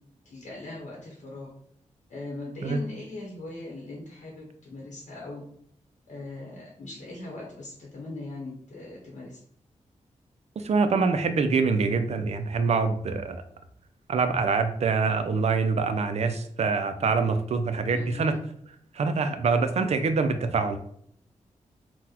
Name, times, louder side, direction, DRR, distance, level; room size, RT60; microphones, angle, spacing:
voice 1, 0.2-1.5 2.1-5.4 6.1-9.4 17.9-18.4, left 2 dB, 75° left, -3 dB, 0.9 m, -40 dB
voice 2, 10.6-13.4 14.1-18.3 18.9-20.8, right 4 dB, 55° right, 8 dB, 0.4 m, -25 dB
3.9 x 2.1 x 2.8 m, 0.66 s
cardioid pair, 80°, 13 cm